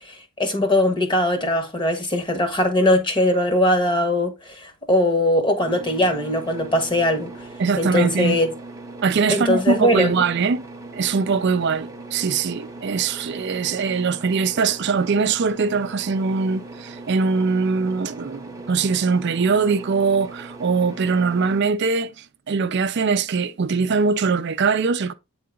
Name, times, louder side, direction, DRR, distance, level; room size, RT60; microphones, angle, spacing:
voice 1, 0.1-7.3 7.8-8.5 9.3-10.1, left 1 dB, 20° left, 1.3 m, -20 dB
sound 1, 5.6-21.6, right 2 dB, 15° right, 0.9 m, -39 dB
voice 2, 7.6-8.4 9.0-10.6 10.9-25.1, right 5 dB, 50° right, 0.4 m, -22 dB
8.7 x 3.8 x 3.7 m
head